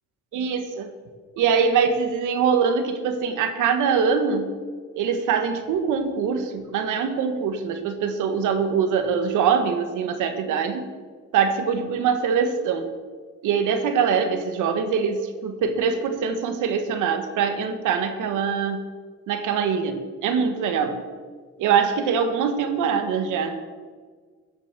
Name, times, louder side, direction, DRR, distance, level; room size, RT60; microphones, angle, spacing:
voice 1, 0.3-0.9 1.4-4.5 4.9-10.9 11.3-12.9 13.4-18.9 19.3-21.0 21.6-23.6, right 6 dB, 90° right, 8 dB, 1.3 m, -23 dB
13.5 x 6.8 x 6.0 m, 1.5 s
cardioid pair, 90°, 30 cm